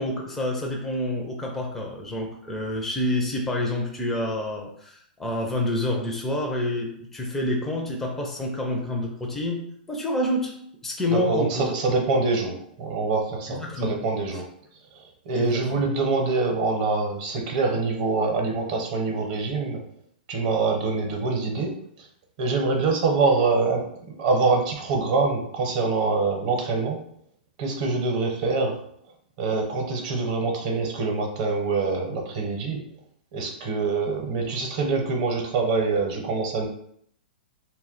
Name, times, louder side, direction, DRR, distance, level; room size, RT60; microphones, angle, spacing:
voice 1, 0.0-9.6 9.9-10.5 10.8-11.7 13.5-14.0 15.3-15.8, left 1 dB, 5° left, -1 dB, 0.4 m, -28 dB
voice 2, 11.1-14.5 14.9-19.8 20.3-21.7 22.0-22.1 22.4-27.0 27.6-28.8 29.4-32.8 33.3-36.7, right 3 dB, 45° right, 1 dB, 0.7 m, -25 dB
2.2 x 2.1 x 3.8 m, 0.69 s
hypercardioid pair, 130°, 5 cm